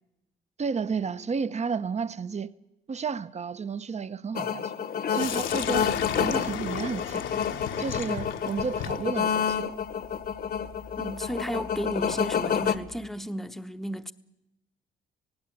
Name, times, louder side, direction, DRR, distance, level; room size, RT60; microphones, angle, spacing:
voice 1, 0.6-2.5 2.9-5.9 6.2-7.3 7.8-9.7, right 5 dB, 35° right, 0.8 m, -32 dB
sound 1, 4.3-12.8, left 7 dB, 50° left, 1.1 m, -29 dB
Sink (filling or washing), 5.1-13.1, left 9 dB, 75° left, 1.2 m, -37 dB
voice 2, 11.0-14.1, equal, ahead, 0.9 m, -33 dB
18.5 x 16.5 x 8.5 m
cardioid pair, 90°, 20 cm